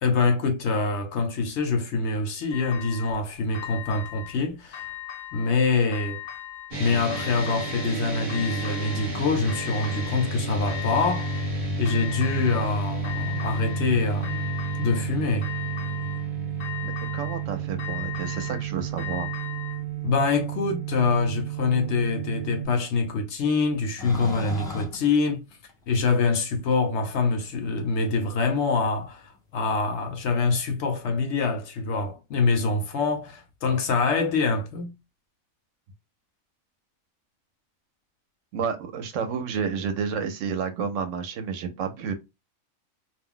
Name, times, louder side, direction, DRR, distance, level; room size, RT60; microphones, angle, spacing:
voice 1, 0.0-4.9 5.3-6.2 6.8-11.4 11.8-14.4 14.8-15.5 20.0-25.4 25.9-34.9, left 4 dB, 65° left, 0.8 m, -25 dB
sound 1, 2.5-3.2 3.5-4.4 4.7-5.6 5.9-6.8 7.1-8.0 8.3-9.1 9.5-10.3 10.7-11.5 11.9-12.7 13.0-13.9 14.2-15.1 15.4-16.3 16.6-17.5 17.8-19.8, left 12 dB, 85° left, 1.1 m, -38 dB
sound 2, 6.7-22.7, right 4 dB, 40° right, 0.9 m, -31 dB
voice 2, 16.8-19.3 38.5-42.1, right 6 dB, 70° right, 0.9 m, -30 dB
sound 3, 24.0-26.2 27.0-27.1 28.5-28.6 30.4-30.5, left 3 dB, 5° left, 0.5 m, -35 dB
2.4 x 2.0 x 3.6 m
omnidirectional pair, 1.4 m